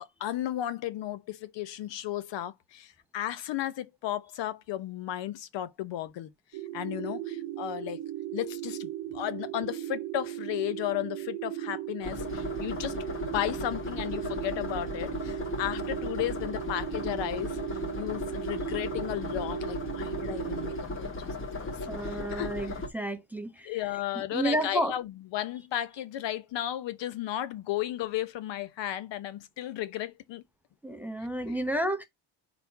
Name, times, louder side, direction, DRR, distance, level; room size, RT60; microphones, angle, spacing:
voice 1, 0.0-6.3 6.7-8.0 8.3-17.6 18.0-21.3 21.6-22.7 23.6-30.4 31.5-31.6, left 13 dB, 65° left, 1.0 m, -34 dB
sound 1, 6.5-20.8, right 13 dB, 55° right, 0.9 m, -37 dB
sound 2, 12.0-22.9, left 2 dB, 25° left, 1.6 m, -36 dB
voice 2, 21.9-23.7 24.1-25.0 30.8-32.0, right 1 dB, 5° right, 0.6 m, -31 dB
4.4 x 4.1 x 5.6 m
cardioid pair, 170°, 47 cm